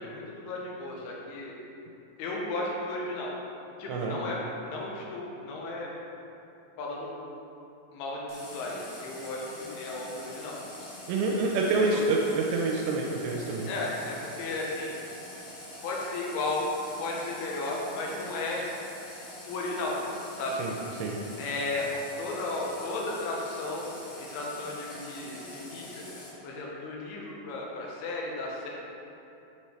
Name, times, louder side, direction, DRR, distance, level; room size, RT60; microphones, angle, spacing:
voice 1, 0.0-1.5 2.2-3.3 3.8-4.4 4.7-5.9 6.8-7.2 7.9-10.6 11.8-12.0 13.7-15.0 15.8-16.7 17.0-18.6 19.5-20.0 20.4-20.6 21.4-26.1 26.4-28.7, left 2 dB, 75° left, -3 dB, 2.6 m, -34 dB
voice 2, 3.9-4.2 11.1-13.7 20.6-21.2, right 3 dB, 85° right, -1 dB, 2.8 m, -27 dB
Water tap faucet, 8.3-26.3, left 1 dB, 60° left, 2.3 m, -45 dB
7.3 x 5.5 x 3.1 m, 2.8 s
omnidirectional pair, 5.0 m